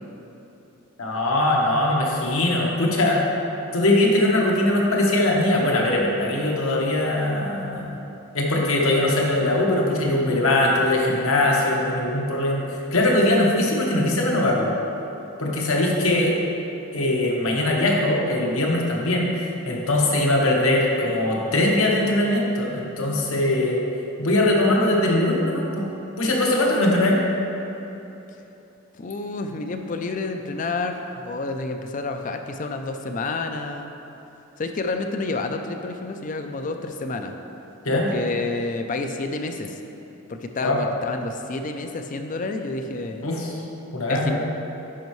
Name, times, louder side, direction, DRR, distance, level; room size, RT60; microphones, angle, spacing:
voice 1, 1.0-3.2 3.7-8.0 8.3-12.6 12.9-14.7 15.4-16.3 16.9-19.3 19.6-23.8 24.2-25.9 26.2-27.2 37.8-38.1 40.6-40.8 43.2-43.6 43.9-44.4, left 1 dB, 75° left, -2 dB, 1.1 m, -21 dB
voice 2, 29.0-33.9 34.6-37.3 37.9-39.8 40.4-43.2 44.1-44.4, left 3 dB, 35° left, 6 dB, 0.4 m, -29 dB
10.5 x 5.4 x 3.1 m, 3.0 s
head